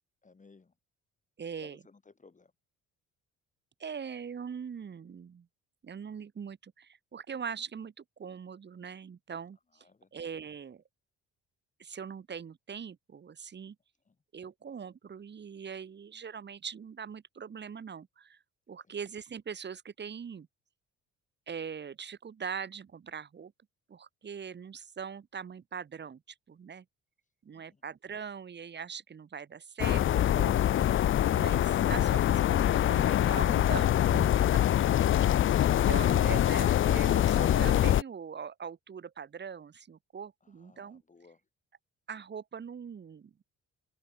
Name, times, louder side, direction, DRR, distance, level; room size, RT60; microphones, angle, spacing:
voice 1, 0.2-0.7 1.6-2.5 9.7-10.1 14.1-14.2 27.5-27.8 40.4-41.4, left 4 dB, 25° left, 2.2 m, -58 dB
voice 2, 1.4-1.8 3.8-5.5 5.8-9.8 10.1-10.8 11.8-13.8 14.3-18.4 18.7-20.5 21.5-23.5 23.9-26.2 26.5-26.8 27.4-31.0 31.3-34.6 35.8-41.0 42.1-43.3, right 7 dB, 35° right, 1.1 m, -41 dB
sound 1, 29.8-38.0, left 11 dB, 45° left, 0.4 m, -24 dB
open air
cardioid pair, 90°, 30 cm